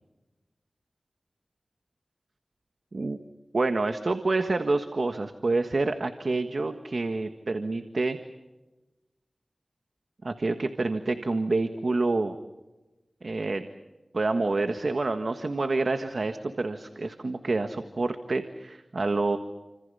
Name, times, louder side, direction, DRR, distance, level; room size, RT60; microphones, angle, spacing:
voice 1, 3.5-8.2 10.2-12.4 13.2-13.6 14.1-19.4, right 3 dB, 60° right, 7 dB, 1.5 m, -27 dB
30.0 x 27.0 x 5.6 m, 1.1 s
wide cardioid pair, 85°, 0 cm